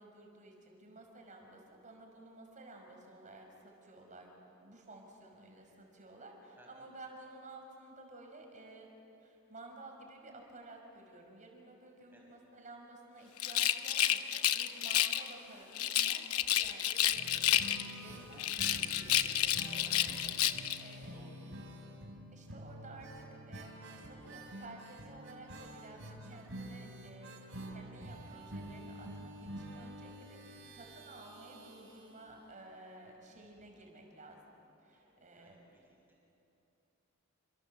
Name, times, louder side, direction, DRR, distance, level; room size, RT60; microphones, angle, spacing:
voice 1, 0.0-4.3 4.6-8.9 9.2-21.5 22.3-27.3 27.7-34.4 34.8-35.6, right 2 dB, 35° right, 2 dB, 5.7 m, -54 dB
Rattle, 13.4-15.3 15.7-18.0 18.4-20.8, left 12 dB, 90° left, 0.9 m, -30 dB
sound 1, 17.1-32.8 33.1-33.2 33.5-33.6, right 1 dB, 65° right, 3.5 m, -48 dB
voice 2, 21.1-21.6 34.9-36.2, right 1 dB, 10° right, -2 dB, 6.5 m, -63 dB
29.0 x 27.0 x 7.7 m, 2.9 s
head